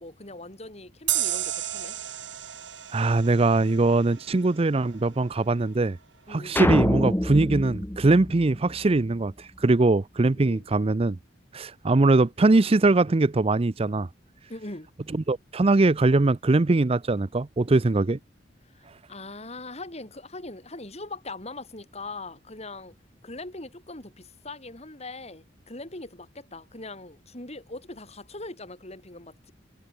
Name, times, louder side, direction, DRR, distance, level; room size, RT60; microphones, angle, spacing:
voice 1, 0.0-2.0 6.3-6.6 10.4-10.7 14.5-14.9 18.6-23.0 23.2-29.5, left 2 dB, 35° left, 5.3 m, -41 dB
sound 1, 1.1-4.4, right 13 dB, 75° right, 2.4 m, -32 dB
voice 2, 2.9-6.0 6.3-11.2 11.5-14.1 15.3-18.2, right 2 dB, 30° right, 0.5 m, -22 dB
sound 2, 6.6-9.0, left 1 dB, 10° left, 1.1 m, -26 dB
head